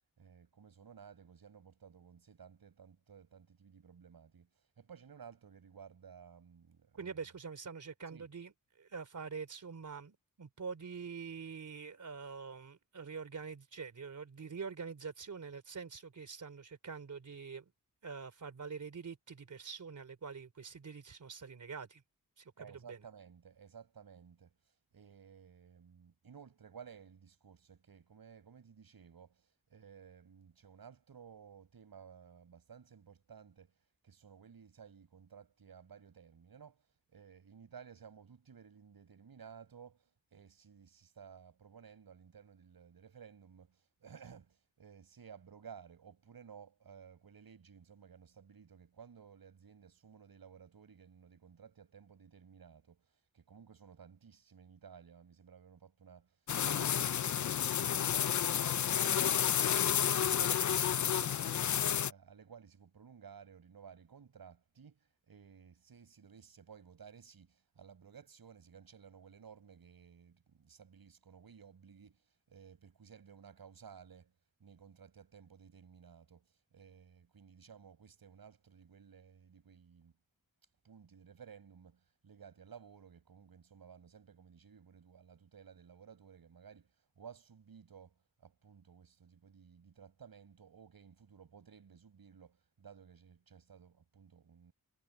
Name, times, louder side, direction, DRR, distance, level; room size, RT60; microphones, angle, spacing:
voice 1, 0.2-7.2 8.1-8.3 22.6-33.8 34.0-36.9 37.1-56.4 56.6-74.3 74.6-80.1 80.8-94.7, right 7 dB, 90° right, 7.0 m, -56 dB
voice 2, 7.0-8.5 8.8-17.6 18.0-22.0 22.4-23.0, right 5 dB, 55° right, 3.5 m, -45 dB
sound 1, 56.5-62.1, left 9 dB, 55° left, 0.5 m, -31 dB
wide cardioid pair, 155°, 35 cm